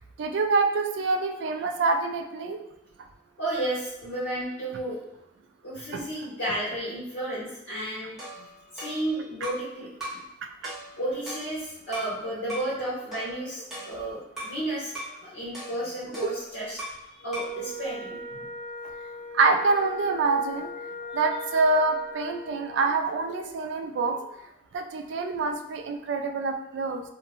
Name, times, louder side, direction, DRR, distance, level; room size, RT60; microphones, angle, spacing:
voice 1, 0.2-2.6 5.9-6.0 10.4-10.7 19.3-24.3 24.7-27.0, right 3 dB, 70° right, 5 dB, 0.3 m, -26 dB
voice 2, 3.4-5.0 5.6-8.2 8.7-10.2 11.0-14.9 15.2-16.8 17.2-18.4, right 1 dB, 70° left, -12 dB, 1.0 m, -32 dB
sound 1, 8.2-9.7 10.0-10.3 10.6-12.2 12.5-12.7 13.1-14.6 14.9-15.2 15.5-17.1 17.3-17.6, right 1 dB, ahead, 0.9 m, -39 dB
Wind instrument woodwind instrument, 17.2-22.8, left 1 dB, 20° left, 0.5 m, -39 dB
2.6 x 2.1 x 2.8 m, 0.83 s
head